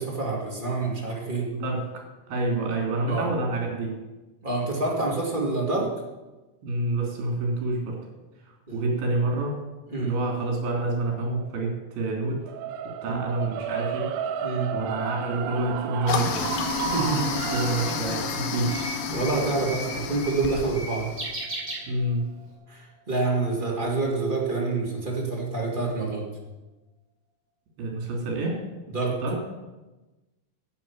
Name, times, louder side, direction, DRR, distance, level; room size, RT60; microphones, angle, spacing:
voice 1, 0.0-1.5 3.1-3.3 4.4-5.9 8.7-8.8 9.9-10.1 13.0-13.2 14.4-14.7 16.9-17.3 19.1-21.1 22.7-26.2 28.9-29.2, right 3 dB, 25° right, -3 dB, 1.0 m, -27 dB
voice 2, 1.5-4.0 6.6-8.0 8.7-9.5 10.0-12.4 13.0-14.1 14.7-16.6 17.5-19.0 21.9-22.2 27.8-28.7 29.2-29.4, right 2 dB, 65° right, 0 dB, 4.8 m, -28 dB
sound 1, 12.5-22.6, right 8 dB, 80° right, 2.7 m, -34 dB
Toilet flush, 16.1-21.3, left 6 dB, 70° left, 2.4 m, -31 dB
Bird, 16.2-22.4, right 1 dB, 10° right, 3.8 m, -38 dB
11.5 x 7.9 x 8.7 m, 1.1 s
omnidirectional pair, 5.2 m